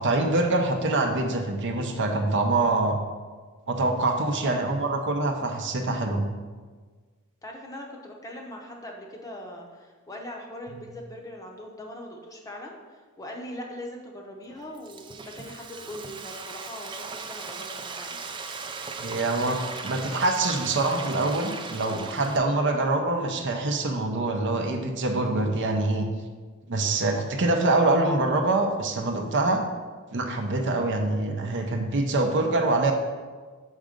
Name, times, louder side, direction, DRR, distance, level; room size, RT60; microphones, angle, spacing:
voice 1, 0.0-3.0 3.7-6.2 19.0-26.1 26.7-29.6 30.1-32.9, right 2 dB, 55° right, 4 dB, 0.6 m, -25 dB
voice 2, 7.4-18.2 22.6-22.9, left 1 dB, 15° left, 0 dB, 0.7 m, -41 dB
Frying (food), 14.5-22.4, right 4 dB, 20° right, 0.3 m, -38 dB
6.4 x 3.7 x 5.0 m, 1.4 s
head